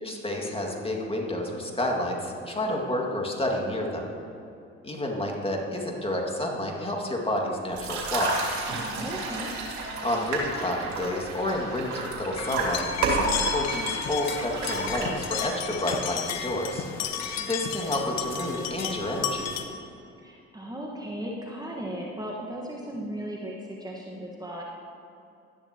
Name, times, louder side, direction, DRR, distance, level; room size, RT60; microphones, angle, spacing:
voice 1, 0.0-4.1 4.8-8.4 10.0-16.9 17.4-19.5, left 1 dB, 20° left, 0 dB, 2.1 m, -30 dB
sound 1, 7.7-15.5, right 3 dB, 70° right, 2.3 m, -31 dB
voice 2, 8.9-9.5 20.2-24.6, equal, 15° right, -3 dB, 1.4 m, -36 dB
sound 2, 12.4-19.6, left 7 dB, 60° left, 1.0 m, -33 dB
12.5 x 10.5 x 2.9 m, 2.6 s
hypercardioid pair, 60°, 30 cm